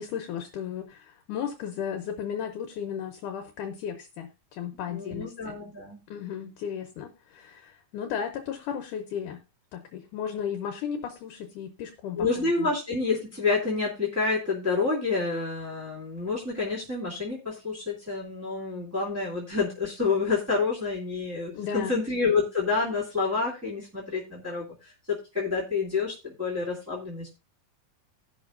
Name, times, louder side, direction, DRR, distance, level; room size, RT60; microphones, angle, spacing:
voice 1, 0.0-5.6 6.1-9.4 9.7-12.7 21.5-22.0, left 8 dB, 70° left, 5 dB, 2.2 m, -35 dB
voice 2, 4.9-6.0 12.2-27.3, left 4 dB, 5° right, -7 dB, 1.7 m, -28 dB
18.5 x 6.2 x 2.5 m, 0.27 s
omnidirectional pair, 4.1 m